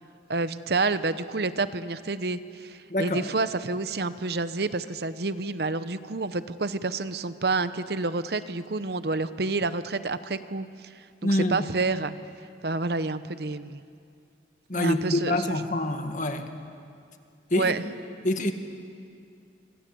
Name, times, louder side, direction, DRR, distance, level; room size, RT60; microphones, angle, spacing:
voice 1, 0.3-10.9 11.2-12.1 12.6-13.8 14.7-15.6 17.6-17.8, right 3 dB, 60° right, 13 dB, 0.9 m, -29 dB
voice 2, 2.9-3.3 11.2-11.7 14.7-16.5 17.5-17.7 18.2-18.5, left 1 dB, 45° left, 6 dB, 1.8 m, -26 dB
27.0 x 26.5 x 7.9 m, 2.4 s
head